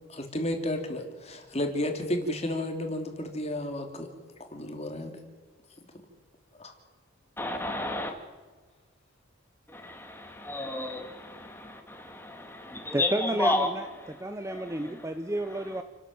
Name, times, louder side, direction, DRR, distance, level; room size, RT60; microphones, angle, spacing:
voice 1, 0.1-4.1 4.5-5.2 6.6-6.7, left 1 dB, 30° left, 4 dB, 2.9 m, -32 dB
voice 2, 7.4-8.1 9.7-13.7 14.5-15.0, left 2 dB, 10° left, 3 dB, 2.7 m, -32 dB
voice 3, 12.9-13.9 14.2-15.8, right 1 dB, 15° right, 8 dB, 0.7 m, -31 dB
29.0 x 12.5 x 7.8 m, 1.4 s
head